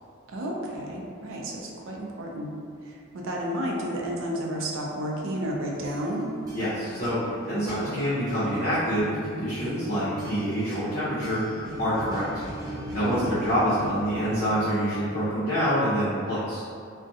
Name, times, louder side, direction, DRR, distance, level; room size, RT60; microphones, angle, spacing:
voice 1, 0.3-2.5 2.8-6.2 13.0-13.4, equal, 70° right, -2 dB, 0.4 m, -32 dB
sound 1, 5.5-15.2, right 1 dB, 20° right, 0.6 m, -39 dB
voice 2, 6.5-7.2 7.4-12.2 12.9-16.6, equal, 50° left, -12 dB, 0.7 m, -26 dB
2.4 x 2.1 x 2.6 m, 2.3 s
head